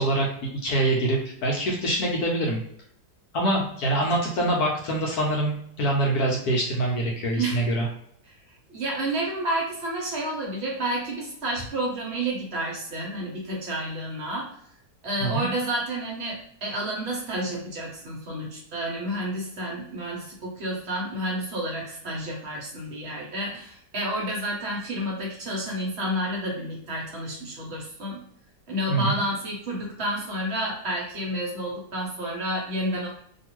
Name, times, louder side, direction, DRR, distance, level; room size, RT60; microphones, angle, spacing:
voice 1, 0.0-2.6 3.3-7.9 15.2-15.5 28.9-29.2, right 1 dB, 65° left, -2 dB, 1.0 m, -25 dB
voice 2, 8.7-14.5 15.0-28.2 28.7-33.1, right 1 dB, 45° right, -3 dB, 0.9 m, -30 dB
2.8 x 2.6 x 3.0 m, 0.68 s
omnidirectional pair, 2.0 m